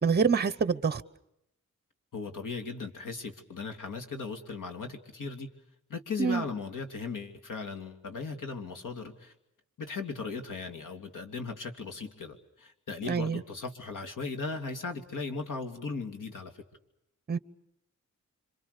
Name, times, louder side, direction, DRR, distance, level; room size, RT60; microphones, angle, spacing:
voice 1, 0.0-1.0 6.2-6.4 13.0-13.4 17.3-17.4, right 5 dB, 30° right, 0.9 m, -26 dB
voice 2, 2.1-5.5 5.9-9.3 9.8-16.5, left 4 dB, 90° left, 2.8 m, -37 dB
28.0 x 26.0 x 6.8 m
wide cardioid pair, 160°, 31 cm